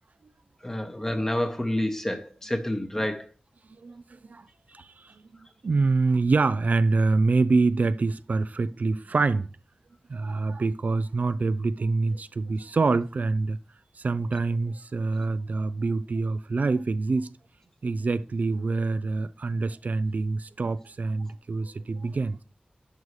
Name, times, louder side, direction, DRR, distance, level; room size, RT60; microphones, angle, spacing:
voice 1, 0.6-3.3, left 1 dB, 15° left, 1.0 m, -28 dB
voice 2, 3.7-4.5 4.7-9.5 10.1-13.6 14.0-17.3 17.8-22.4, right 3 dB, 60° right, 0.4 m, -26 dB
11.0 x 5.3 x 3.2 m
wide cardioid pair, 80°, 3 cm